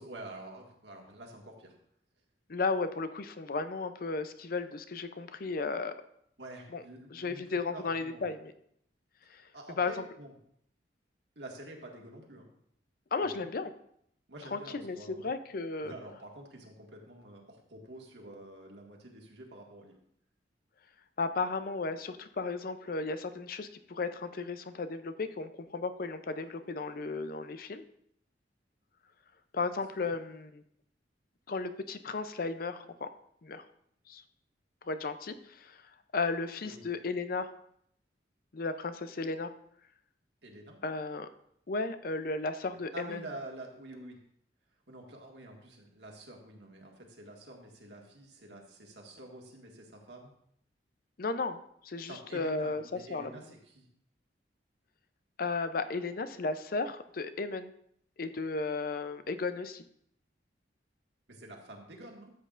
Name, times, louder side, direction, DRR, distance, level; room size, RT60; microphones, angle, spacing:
voice 1, 0.0-1.7 6.4-8.3 9.5-10.3 11.4-12.5 13.2-13.5 14.3-15.3 15.8-20.0 30.0-30.1 36.6-36.8 40.4-40.8 42.9-44.2 44.9-50.3 52.1-53.9 61.3-62.3, right 1 dB, 70° right, 0 dB, 1.8 m, -48 dB
voice 2, 2.5-5.9 6.7-6.8 7.1-8.5 9.3-9.4 9.8-9.9 13.1-13.7 14.5-15.9 21.2-27.8 29.5-30.6 31.5-33.1 33.4-33.6 34.1-34.2 34.9-35.8 36.1-37.5 38.5-39.5 40.8-41.3 41.7-43.2 51.2-53.3 55.4-57.7 58.2-59.8, left 3 dB, 50° left, 10 dB, 0.5 m, -34 dB
13.0 x 7.7 x 2.5 m, 0.70 s
head